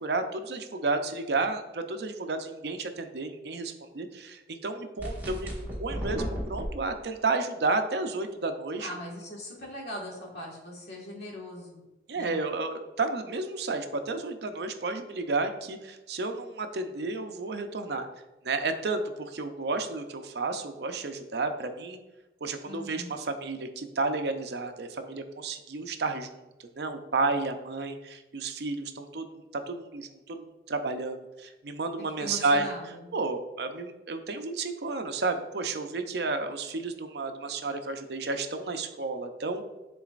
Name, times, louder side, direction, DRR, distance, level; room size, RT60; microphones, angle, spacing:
voice 1, 0.0-8.9 12.1-18.1 18.4-22.0 22.4-26.3 26.8-32.7 33.1-39.7, right 3 dB, 65° right, 7 dB, 0.6 m, -32 dB
sound 1, 5.0-6.7, equal, 10° right, 1.8 m, -34 dB
voice 2, 8.8-11.8 12.1-12.4 22.6-23.1 32.2-33.0, left 1 dB, 65° left, -3 dB, 1.7 m, -40 dB
10.0 x 3.9 x 2.5 m, 1.0 s
head